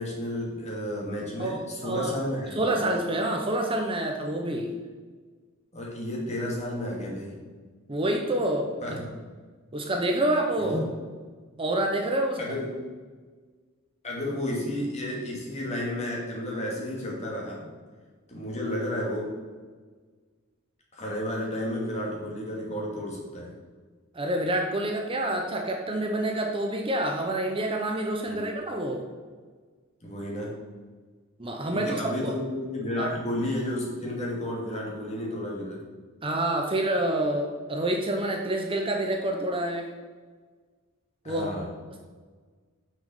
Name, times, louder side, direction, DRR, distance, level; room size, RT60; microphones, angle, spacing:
voice 1, 0.0-2.8 5.7-7.4 8.8-9.1 10.6-10.9 12.4-12.7 14.0-17.7 18.3-19.3 20.9-23.5 28.3-28.4 30.0-30.5 31.7-35.8 41.2-41.6, left 1 dB, 35° left, -3 dB, 2.5 m, -32 dB
voice 2, 1.4-2.1 2.5-4.7 7.9-9.0 9.7-10.8 11.6-12.5 24.1-29.0 31.4-32.3 33.0-33.1 36.2-39.9 41.3-41.5, right 1 dB, 25° right, 2 dB, 0.8 m, -27 dB
6.4 x 6.2 x 6.6 m, 1.5 s
head